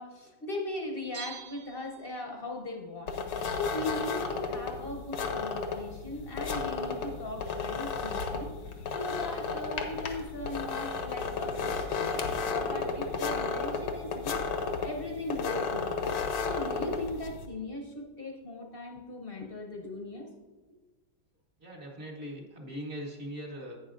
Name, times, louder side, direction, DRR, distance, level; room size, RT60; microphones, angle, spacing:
voice 1, 0.0-3.1 3.5-8.5 8.9-14.4 14.8-16.1 16.5-20.3, left 2 dB, 45° left, 1 dB, 0.8 m, -38 dB
Bell, 1.1-2.5 2.8-2.9, right 9 dB, 60° right, 1.1 m, -46 dB
sound 1, 3.1-17.5, left 5 dB, 80° left, 1.5 m, -33 dB
voice 2, 21.6-23.8, equal, 40° right, -1 dB, 1.2 m, -40 dB
11.0 x 8.7 x 2.5 m, 1.2 s
omnidirectional pair, 1.9 m